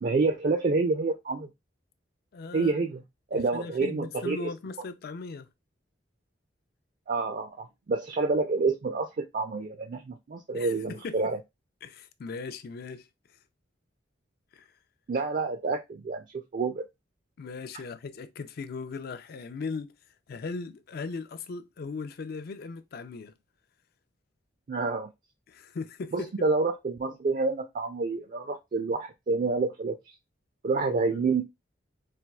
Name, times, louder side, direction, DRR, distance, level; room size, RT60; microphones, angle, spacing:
voice 1, 0.0-1.5 2.5-3.0 3.3-4.5 7.1-11.4 15.1-16.9 24.7-25.1 26.1-30.1 30.6-31.4, right 3 dB, 45° right, 0.4 m, -28 dB
voice 2, 2.3-2.8 3.3-5.5 10.5-11.3 11.8-13.1 14.5-14.7 17.4-20.0 20.3-23.3 25.5-26.3 31.0-31.3, left 4 dB, 55° left, 0.4 m, -38 dB
4.3 x 2.3 x 2.2 m
head